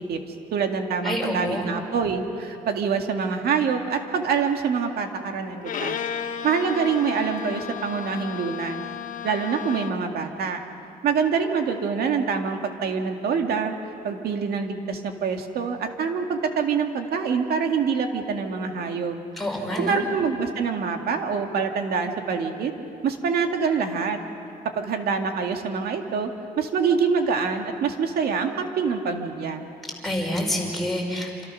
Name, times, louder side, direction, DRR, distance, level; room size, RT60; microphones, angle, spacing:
voice 1, 0.5-6.0 6.4-8.8 9.2-10.6 11.0-13.8 14.0-19.2 19.8-22.7 23.0-24.2 24.8-26.3 26.6-29.6, right 5 dB, 75° right, 4 dB, 2.2 m, -25 dB
voice 2, 1.0-1.7 19.4-20.0 30.0-31.4, left 1 dB, ahead, -2 dB, 5.4 m, -27 dB
Bowed string instrument, 5.6-10.1, left 8 dB, 55° left, 1.2 m, -33 dB
28.0 x 27.0 x 6.4 m, 2.7 s
cardioid pair, 150°, 16 cm